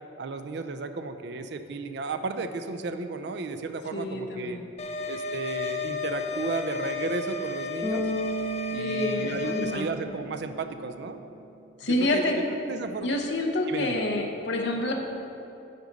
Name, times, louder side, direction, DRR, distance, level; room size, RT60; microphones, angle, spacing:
voice 1, 0.2-4.6 5.1-8.1 8.7-11.2 11.8-12.3 12.7-13.1 13.7-14.0, right 3 dB, 55° right, 8 dB, 0.4 m, -34 dB
voice 2, 3.9-4.7 8.8-9.9 11.8-12.4 13.0-14.9, left 1 dB, 60° left, 2 dB, 0.7 m, -28 dB
sound 1, 4.8-9.8, left 4 dB, 35° left, 0.4 m, -33 dB
Bass guitar, 7.8-10.9, right 2 dB, 10° left, 1.6 m, -34 dB
9.7 x 4.0 x 5.2 m, 2.8 s
head